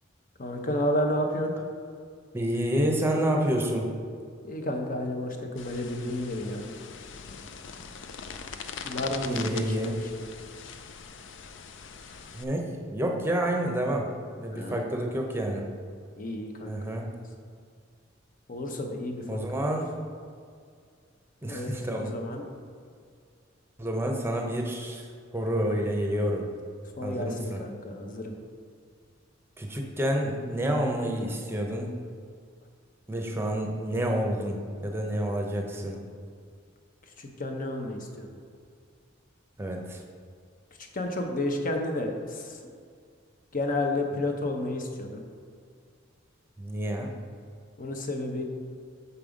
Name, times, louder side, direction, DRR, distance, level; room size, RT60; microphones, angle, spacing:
voice 1, 0.4-1.6 4.4-6.7 8.8-10.2 14.5-14.9 16.2-17.0 18.5-19.4 21.5-22.5 27.0-28.4 37.2-38.4 40.9-42.6 43.5-45.2 47.8-48.4, left 1 dB, 45° left, 3 dB, 0.8 m, -31 dB
voice 2, 2.3-3.9 9.3-10.0 12.4-14.1 14.3-15.7 16.7-17.1 19.3-20.0 21.4-22.2 23.8-26.4 27.0-27.6 29.6-32.0 33.1-36.0 39.6-40.0 46.6-47.1, right 1 dB, 10° right, 1 dB, 0.8 m, -29 dB
sound 1, 5.6-12.4, left 6 dB, 65° left, 0.5 m, -41 dB
7.0 x 5.4 x 5.1 m, 2.2 s
head